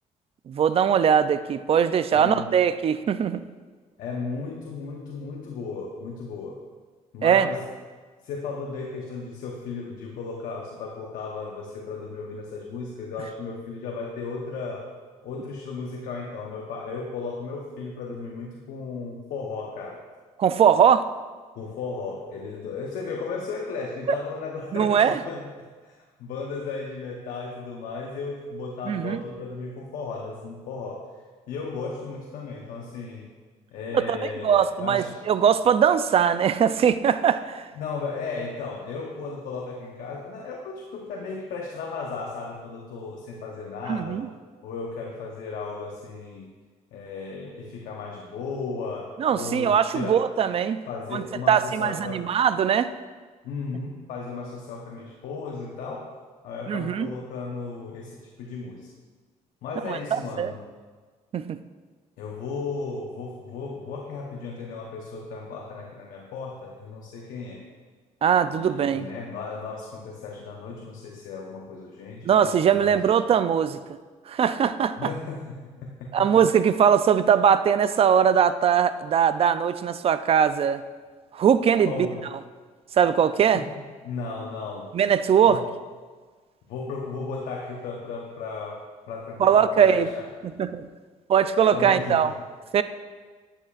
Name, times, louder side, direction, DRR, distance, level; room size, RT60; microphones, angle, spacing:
voice 1, 0.5-3.4 7.2-7.5 20.4-21.1 24.7-25.2 28.9-29.2 33.9-34.2 34.4-37.6 43.9-44.3 49.2-50.8 51.1-52.9 56.7-57.1 59.8-60.5 61.3-61.6 68.2-69.1 72.2-73.8 74.3-75.1 76.1-80.8 81.3-82.1 83.0-83.6 84.9-85.6 89.4-90.1 90.6-90.8 91.3-92.3 92.7-92.8, right 8 dB, 45° right, 12 dB, 0.4 m, -21 dB
voice 2, 2.1-2.6 4.0-6.6 7.1-7.7 8.2-14.9 15.2-20.0 21.6-25.5 25.8-25.9 26.2-31.1 31.5-33.3 33.7-35.3 37.7-44.2 44.6-46.5 46.9-50.3 50.9-52.3 53.4-56.1 56.4-58.9 59.6-60.7 62.2-67.6 68.5-73.2 75.0-75.6 76.0-76.4 81.8-82.2 83.5-83.7 84.0-85.0 85.4-85.7 86.7-90.3 91.7-92.4, left 4 dB, 85° left, -1 dB, 1.0 m, -35 dB
11.5 x 9.1 x 2.5 m, 1.5 s
cardioid pair, 100°, 14 cm